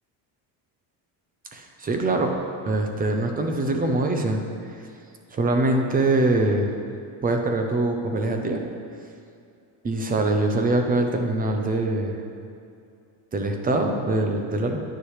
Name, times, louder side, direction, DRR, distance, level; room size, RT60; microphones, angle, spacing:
voice 1, 1.5-2.4 2.6-4.7 5.3-6.7 7.2-8.6 9.8-12.2 13.3-14.8, right 2 dB, 20° right, 3 dB, 0.6 m, -23 dB
9.9 x 9.6 x 3.2 m, 2.4 s
cardioid pair, 165°, 46 cm